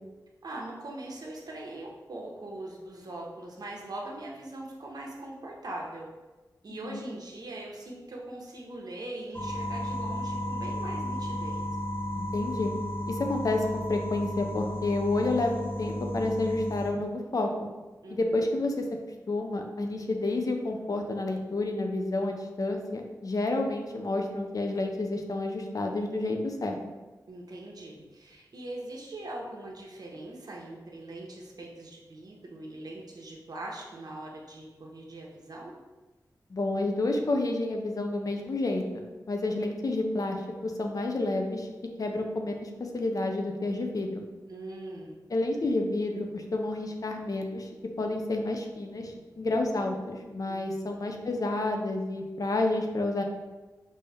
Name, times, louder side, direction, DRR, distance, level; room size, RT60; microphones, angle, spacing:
voice 1, 0.4-6.1 6.6-11.7 18.0-18.5 27.3-35.7 44.5-45.1 50.5-50.6, right 1 dB, 65° right, -2 dB, 0.9 m, -41 dB
voice 2, 6.7-7.0 12.1-12.7 13.1-17.5 18.1-18.8 19.3-26.8 36.5-41.7 42.0-44.2 45.3-47.7 48.0-53.2, left 2 dB, 55° left, 3 dB, 0.6 m, -30 dB
sound 1, 9.3-16.9, equal, 30° left, 0.8 m, -33 dB
5.5 x 2.7 x 3.4 m, 1.2 s
wide cardioid pair, 75°, 7 cm